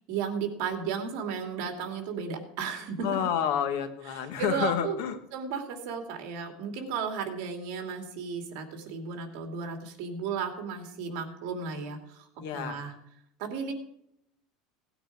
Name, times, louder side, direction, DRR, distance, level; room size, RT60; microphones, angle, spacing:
voice 1, 0.1-3.1 4.4-5.0 5.3-12.3 12.5-12.9 13.4-13.7, right 6 dB, 50° right, 5 dB, 2.6 m, -34 dB
voice 2, 3.0-5.2 12.4-12.9, left 9 dB, 65° left, 8 dB, 1.6 m, -29 dB
17.5 x 9.3 x 4.8 m, 0.75 s
cardioid pair, 175°, 0 cm